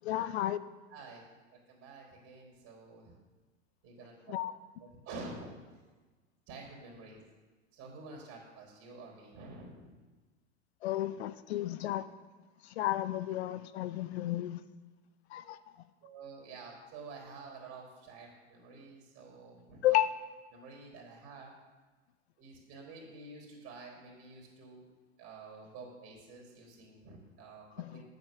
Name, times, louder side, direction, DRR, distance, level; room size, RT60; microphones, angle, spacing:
voice 1, 0.0-0.6 4.3-4.5 10.8-12.0 12.6-14.6 15.3-15.6 19.8-20.1 27.8-28.0, left 14 dB, 65° left, 14 dB, 0.6 m, -32 dB
voice 2, 0.9-1.2 1.7-3.1 3.8-4.4 4.8-5.6 6.5-7.2 7.7-9.9 16.0-20.0 20.5-21.5 22.4-24.8 25.2-28.0, right 3 dB, 45° right, -3 dB, 3.7 m, -49 dB
8.8 x 8.1 x 6.4 m, 1.3 s
hypercardioid pair, 95°, 34 cm